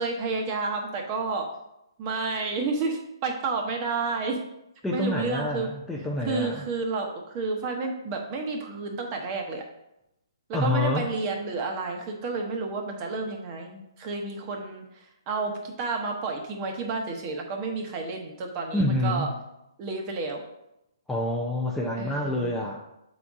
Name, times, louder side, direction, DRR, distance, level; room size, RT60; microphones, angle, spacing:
voice 1, 0.0-1.5 2.0-4.4 4.9-5.7 6.2-9.6 10.5-14.8 15.3-19.3 19.8-20.4 22.0-22.6, right 3 dB, 30° right, 3 dB, 1.0 m, -30 dB
voice 2, 4.8-6.6 10.5-11.1 18.7-19.3 21.1-22.8, left 1 dB, 5° left, -3 dB, 0.5 m, -27 dB
8.3 x 4.0 x 3.6 m, 0.86 s
hypercardioid pair, 150°, 3 cm